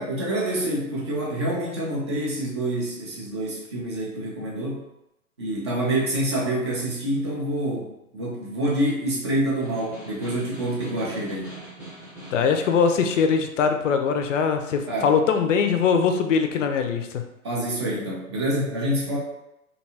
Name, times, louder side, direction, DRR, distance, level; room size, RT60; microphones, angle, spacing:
voice 1, 0.0-4.9 5.4-11.5 14.9-15.1 17.4-19.2, right 1 dB, 20° right, -5 dB, 0.3 m, -27 dB
Snare drum, 9.4-13.3, right 1 dB, 5° right, 0.7 m, -42 dB
voice 2, 12.3-17.2, left 6 dB, 60° left, 6 dB, 0.5 m, -22 dB
2.7 x 2.3 x 2.7 m, 0.88 s
figure-of-eight pair, 115°, 44 cm